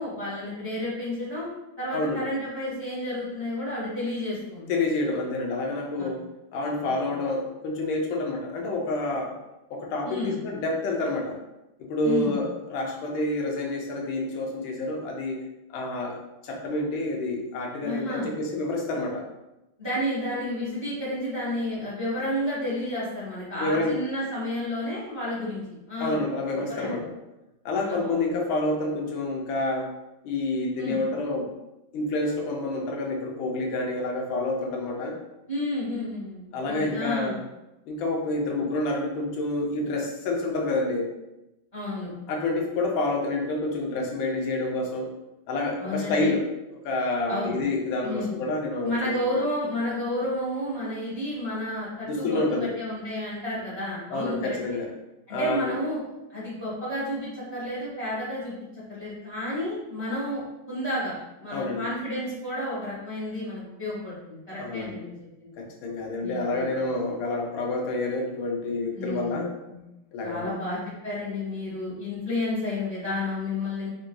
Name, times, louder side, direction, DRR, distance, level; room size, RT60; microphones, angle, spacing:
voice 1, 0.0-1.5 1.8-4.7 6.0-6.1 6.7-7.0 10.0-10.4 12.0-12.4 17.8-18.3 19.8-25.6 25.9-26.2 26.7-27.0 27.7-28.3 30.8-31.0 35.5-37.4 41.7-42.1 45.8-46.3 47.3-47.6 48.0-48.4 48.8-54.5 55.3-56.0 56.3-58.5 58.9-61.1 61.4-65.5 66.2-66.7 68.9-69.4 69.7-69.8 70.2-73.9, left 1 dB, 20° right, -9 dB, 0.7 m, -31 dB
voice 2, 4.7-6.2 6.5-9.4 9.7-11.4 11.8-15.4 15.7-16.2 16.4-19.3 23.6-24.0 26.0-27.1 27.6-29.9 30.2-31.5 31.9-35.2 36.5-37.4 37.9-41.1 42.3-45.1 45.5-46.5 46.8-49.3 52.1-52.7 54.1-54.9 55.3-55.8 61.5-61.8 64.6-65.0 65.6-69.5 70.1-70.5, left 2 dB, 85° left, 0 dB, 1.4 m, -28 dB
3.7 x 2.6 x 2.2 m, 0.94 s
omnidirectional pair, 2.1 m